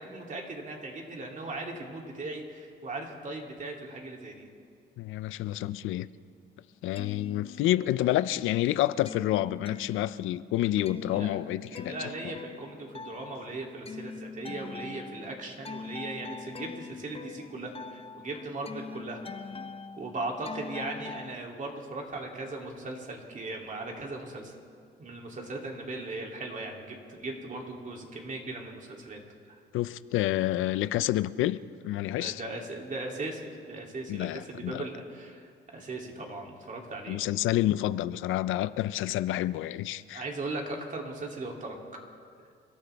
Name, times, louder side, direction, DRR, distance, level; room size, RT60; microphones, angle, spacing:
voice 1, 0.0-4.5 11.1-19.2 20.0-24.5 25.0-29.2 32.2-37.2 40.1-41.8 42.4-42.5, right 2 dB, 40° right, 2.8 m, -38 dB
voice 2, 5.0-6.1 6.8-11.9 29.7-32.4 34.1-34.8 37.1-40.2, left 14 dB, 85° left, 0.5 m, -29 dB
sound 1, 6.7-8.2 8.5-21.3, left 5 dB, 30° left, 0.8 m, -43 dB
28.5 x 13.5 x 3.4 m
cardioid pair, 90°, 20 cm